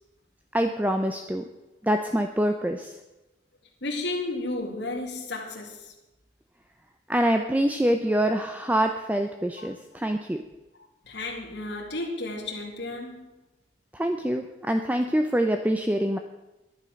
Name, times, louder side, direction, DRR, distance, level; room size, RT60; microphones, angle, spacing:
voice 1, 0.5-1.5 1.8-2.9 7.1-10.4 13.9-16.2, right 1 dB, 10° right, 0.6 m, -25 dB
voice 2, 3.8-5.9 9.6-9.7 11.1-13.3, left 2 dB, 70° left, 2.4 m, -33 dB
11.0 x 11.0 x 6.4 m
head